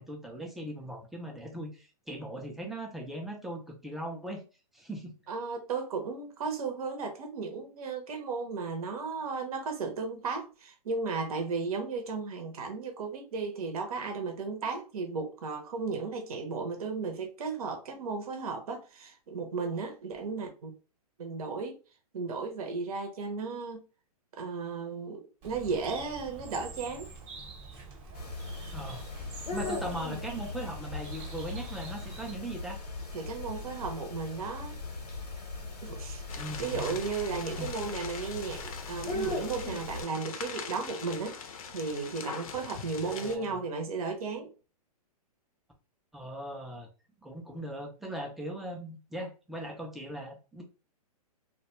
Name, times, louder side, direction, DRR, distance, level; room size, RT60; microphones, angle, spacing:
voice 1, 0.0-4.4 4.7-5.1 28.7-29.0 29.5-32.8 36.3-37.0 37.6-37.7 43.0-43.6 46.1-46.9 47.2-50.6, right 1 dB, ahead, 0.3 m, -39 dB
voice 2, 5.3-20.7 21.2-21.8 22.1-23.8 24.4-27.1 33.1-34.7 35.8-36.2 36.6-41.4 41.7-44.5, right 4 dB, 65° right, 0.7 m, -35 dB
Bird, 25.4-32.3, right 4 dB, 30° right, 0.8 m, -46 dB
sound 1, 28.1-40.0, left 3 dB, 90° left, 0.9 m, -39 dB
sound 2, 36.3-43.4, left 6 dB, 60° left, 0.5 m, -42 dB
2.2 x 2.2 x 2.9 m
hypercardioid pair, 130°, 20 cm